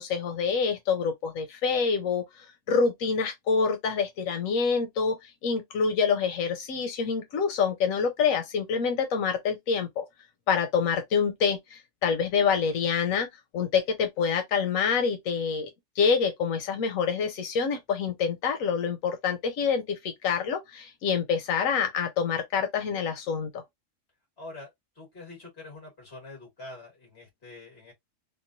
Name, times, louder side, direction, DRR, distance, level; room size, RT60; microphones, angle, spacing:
voice 1, 0.0-10.0 10.5-13.3 13.5-15.7 16.0-23.6, left 6 dB, 90° left, 1.1 m, -26 dB
voice 2, 24.4-24.7 25.0-27.9, left 2 dB, 50° left, 2.1 m, -45 dB
3.6 x 2.3 x 2.6 m
omnidirectional pair, 1.4 m